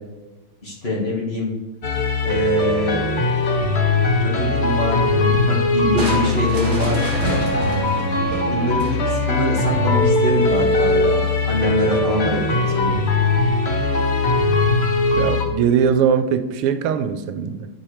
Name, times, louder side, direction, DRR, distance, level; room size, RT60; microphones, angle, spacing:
voice 1, 0.6-1.5 2.2-3.0 4.2-7.1 8.5-13.0, equal, 30° left, -4 dB, 1.8 m, -24 dB
sound 1, 1.8-15.5, left 3 dB, 80° left, 0.5 m, -20 dB
Crushing, 6.0-9.3, right 1 dB, 30° right, 1.0 m, -28 dB
voice 2, 15.1-17.7, right 7 dB, 85° right, 10 dB, 1.5 m, -20 dB
8.4 x 4.4 x 4.7 m, 1.1 s
omnidirectional pair, 2.4 m